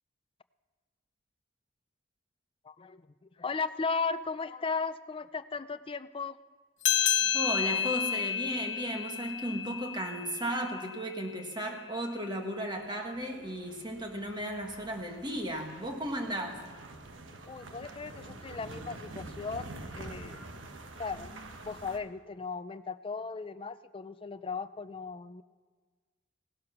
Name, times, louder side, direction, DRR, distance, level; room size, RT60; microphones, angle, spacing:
voice 1, 2.6-6.4 17.5-20.6 21.0-21.4 21.6-25.4, left 4 dB, 30° left, 13 dB, 0.4 m, -36 dB
sound 1, 6.8-11.7, left 10 dB, 75° left, 0.9 m, -31 dB
voice 2, 7.2-16.6, equal, 25° right, 2 dB, 1.7 m, -35 dB
sound 2, 12.7-22.0, right 2 dB, 90° right, 1.2 m, -47 dB
17.0 x 11.5 x 5.8 m, 1.5 s
head